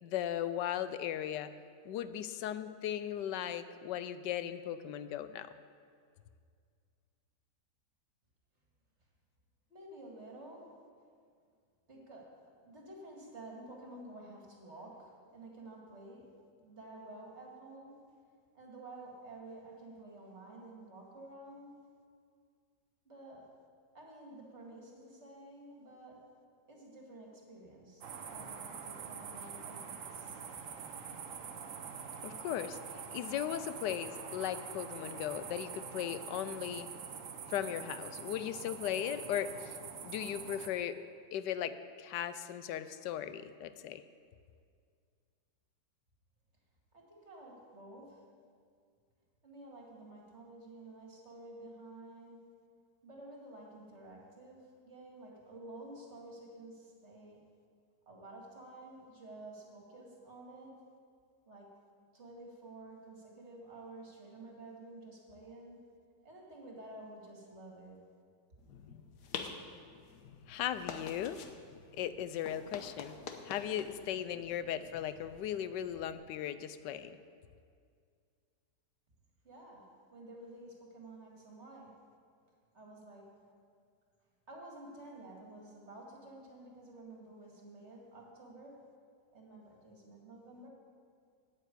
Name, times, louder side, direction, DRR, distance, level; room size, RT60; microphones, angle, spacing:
voice 1, 0.0-1.5 1.8-5.5 32.2-36.9 37.5-39.8 40.0-41.0 41.3-44.0 70.5-71.4 71.9-73.2 73.4-77.1, left 10 dB, 90° left, 13 dB, 1.2 m, -37 dB
voice 2, 9.7-10.6 11.9-16.2 16.6-18.0 18.5-21.8 23.0-23.5 23.9-26.3 26.7-28.0 28.3-30.4 46.9-48.2 49.4-52.4 53.0-54.6 54.8-57.4 58.1-60.7 61.5-61.7 62.1-65.8 66.2-68.0 79.4-79.9 80.1-81.9 82.7-83.3 84.5-88.8 89.3-90.7, right 2 dB, 40° right, -1 dB, 2.4 m, -51 dB
sound 1, 28.0-40.7, right 6 dB, 55° right, 1.1 m, -45 dB
sound 2, 68.6-76.1, left 6 dB, 70° left, 1.5 m, -48 dB
9.2 x 9.1 x 8.5 m, 2.2 s
omnidirectional pair, 1.8 m